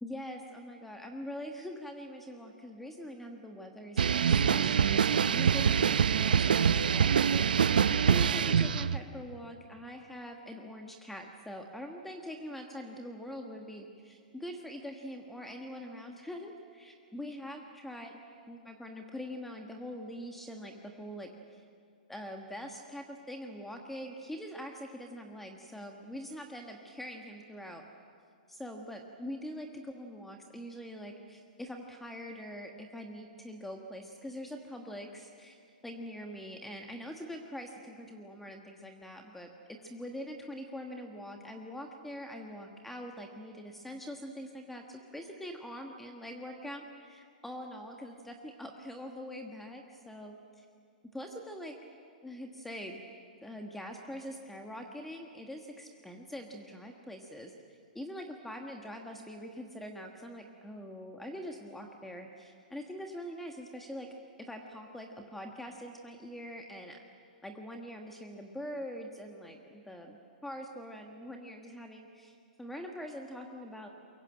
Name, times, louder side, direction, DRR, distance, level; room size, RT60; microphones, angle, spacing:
voice 1, 0.0-18.1 18.5-21.6 22.1-27.8 28.5-35.6 35.8-50.7 51.1-51.8 52.2-53.0 53.4-57.5 57.9-64.1 64.4-67.0 67.4-73.9, equal, 5° left, 3 dB, 1.4 m, -43 dB
sound 1, 4.0-9.0, right 7 dB, 85° right, 0.7 m, -25 dB
23.5 x 22.0 x 8.9 m, 2.4 s
hypercardioid pair, 140°, 5 cm